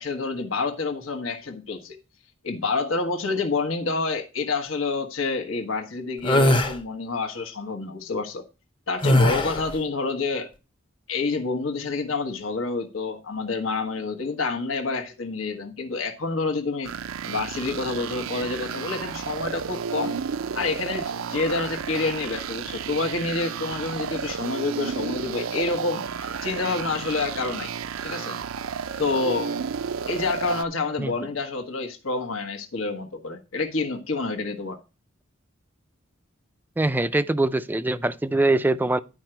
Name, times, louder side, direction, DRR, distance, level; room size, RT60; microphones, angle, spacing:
voice 1, 0.0-2.0 2.4-8.4 8.9-10.5 11.1-16.9 17.3-20.1 20.5-27.7 28.0-28.4 29.0-29.6 30.1-34.8, left 3 dB, 80° left, 1.3 m, -28 dB
sound 1, 6.2-6.8 9.0-9.7, left 1 dB, 25° left, 0.7 m, -19 dB
sound 2, 16.8-30.6, right 6 dB, 85° right, 0.5 m, -32 dB
voice 2, 36.8-39.0, right 2 dB, 10° right, 0.4 m, -23 dB
11.0 x 5.0 x 4.4 m
head